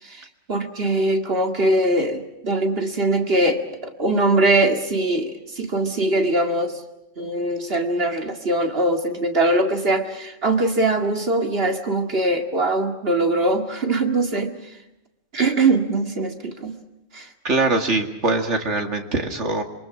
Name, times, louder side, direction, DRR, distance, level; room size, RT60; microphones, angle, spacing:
voice 1, 0.0-6.8 7.2-14.8 15.3-16.8 17.1-17.3, right 2 dB, 55° right, 5 dB, 2.4 m, -22 dB
voice 2, 17.4-19.6, right 3 dB, 75° right, 4 dB, 2.6 m, -22 dB
27.0 x 24.0 x 6.1 m, 0.92 s
omnidirectional pair, 1.2 m